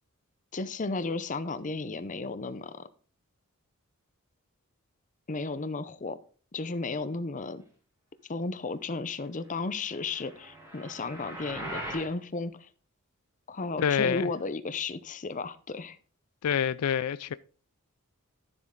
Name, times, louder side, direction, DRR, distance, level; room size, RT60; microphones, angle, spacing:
voice 1, 0.5-2.9 5.3-6.2 6.5-7.6 8.3-12.7 13.5-16.0, left 3 dB, 35° left, 0.6 m, -34 dB
sound 1, 9.9-12.1, right 1 dB, 15° right, 2.4 m, -40 dB
voice 2, 13.8-14.3 16.4-17.3, left 8 dB, 85° left, 0.4 m, -27 dB
12.0 x 7.4 x 3.7 m
head